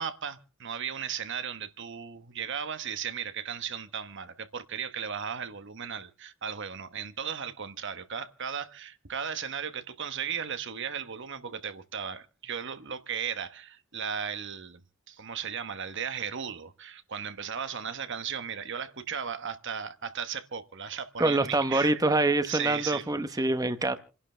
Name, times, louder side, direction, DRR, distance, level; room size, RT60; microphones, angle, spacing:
voice 1, 0.0-14.8 15.1-22.0 22.5-23.5, right 7 dB, 60° right, 1.2 m, -36 dB
voice 2, 21.2-24.0, right 2 dB, 15° right, 1.0 m, -25 dB
28.5 x 11.5 x 3.3 m
head